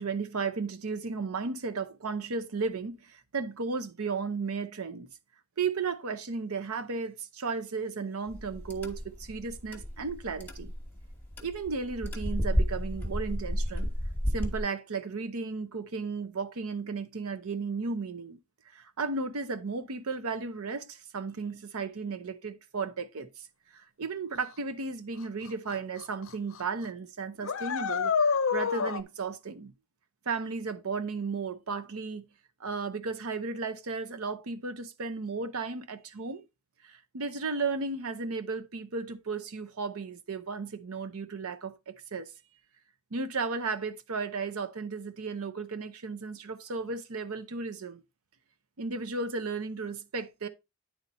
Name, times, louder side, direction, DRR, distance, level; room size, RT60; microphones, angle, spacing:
voice 1, 0.0-5.1 5.6-10.7 11.4-13.9 14.3-18.4 18.7-23.3 23.7-29.7 30.3-32.3 32.6-36.4 36.8-42.3 43.1-48.0 48.8-50.5, right 4 dB, 80° right, 0.7 m, -34 dB
sound 1, 8.3-14.6, equal, 10° left, 1.1 m, -33 dB
sound 2, 25.5-25.6 26.0-26.3 26.5-26.6 27.4-29.0, left 6 dB, 65° left, 0.5 m, -27 dB
9.5 x 4.1 x 4.2 m
head